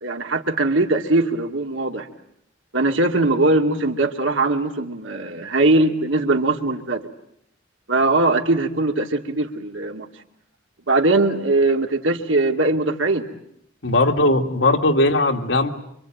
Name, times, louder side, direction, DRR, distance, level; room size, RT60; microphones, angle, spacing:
voice 1, 0.0-2.1 2.7-7.0 7.9-10.1 10.9-13.3, right 2 dB, 90° right, 4 dB, 2.2 m, -20 dB
voice 2, 13.8-15.7, left 2 dB, 80° left, 4 dB, 2.0 m, -18 dB
26.0 x 24.5 x 9.1 m, 0.75 s
head